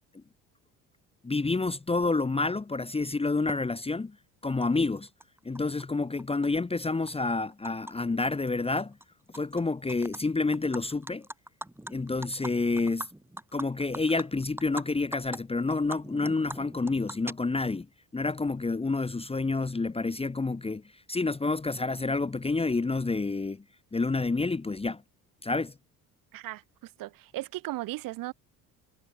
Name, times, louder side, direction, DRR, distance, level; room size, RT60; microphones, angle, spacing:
voice 1, 1.2-4.2 4.4-5.1 5.4-9.0 9.3-11.3 11.9-13.1 13.5-17.9 18.1-20.8 21.1-23.6 23.9-25.0 25.4-25.7, left 3 dB, 15° left, 1.3 m, -29 dB
Animal, 3.5-3.6 4.6-4.7 5.0-5.8 6.2-7.9 8.2-8.5 8.8-9.6 9.9-10.2 10.5-14.8 15.1-15.4 15.7-17.8, right 1 dB, 5° right, 4.1 m, -41 dB
voice 2, 26.3-28.3, right 17 dB, 45° right, 1.3 m, -37 dB
figure-of-eight pair, 55°, 45 cm